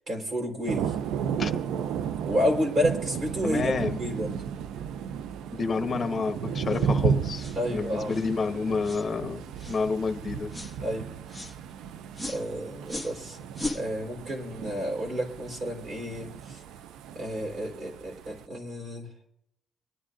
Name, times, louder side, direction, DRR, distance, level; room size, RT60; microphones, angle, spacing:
voice 1, 0.1-0.9 2.3-4.4 7.5-8.2 10.8-11.1 12.3-13.4 13.7-16.6 17.2-19.1, equal, 50° right, 0 dB, 3.9 m, -30 dB
Thunder, 0.7-18.5, right 7 dB, 85° right, 0.4 m, -34 dB
voice 2, 3.4-4.0 5.5-7.4 7.7-10.5, left 4 dB, 40° left, 6 dB, 1.3 m, -29 dB
sound 1, 6.7-6.9 7.4-7.6 8.1-8.3 8.8-9.1 9.6-9.8 10.5-10.8 11.3-11.6 12.1-12.4 12.9-13.2 13.5-13.8, left 2 dB, 5° right, 1.5 m, -37 dB
25.5 x 10.0 x 2.5 m, 0.74 s
cardioid pair, 90°, 0 cm